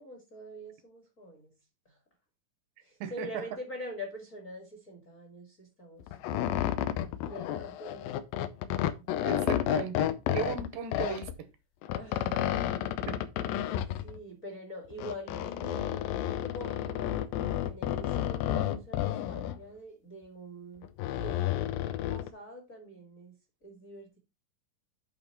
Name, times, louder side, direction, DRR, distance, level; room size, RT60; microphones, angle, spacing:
voice 1, 0.0-1.5 1.8-2.0 2.8-6.8 7.2-8.3 9.0-9.3 11.9-13.0 14.0-21.7 22.1-23.4 23.6-24.2, equal, 30° left, 1.7 m, -45 dB
voice 2, 3.0-3.4 9.2-11.5 13.1-13.2, right 9 dB, 80° right, 2.6 m, -37 dB
sound 1, 6.0-11.4 11.8-14.2 14.9-19.6 20.8-22.3, left 11 dB, 90° left, 2.5 m, -31 dB
8.8 x 3.8 x 5.3 m
omnidirectional pair, 4.0 m